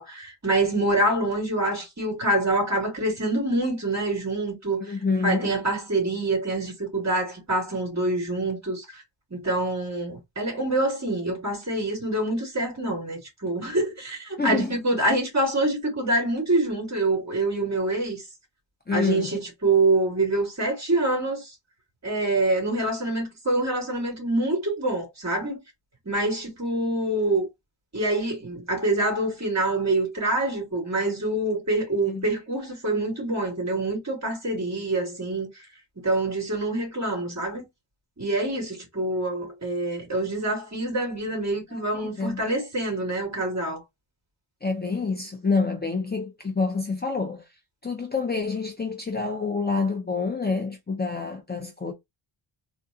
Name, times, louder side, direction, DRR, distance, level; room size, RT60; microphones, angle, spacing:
voice 1, 0.0-5.0 5.2-9.0 9.3-18.2 18.9-21.5 22.0-25.6 26.1-27.5 27.9-35.5 36.0-37.7 38.2-43.8, right 2 dB, 35° right, 2.4 m, -26 dB
voice 2, 4.8-5.5 14.4-14.8 18.9-19.4 32.1-32.2 41.7-42.4 44.6-47.5 47.8-51.9, left 4 dB, 20° left, 0.7 m, -27 dB
3.7 x 2.4 x 2.7 m
cardioid pair, 85°, 49 cm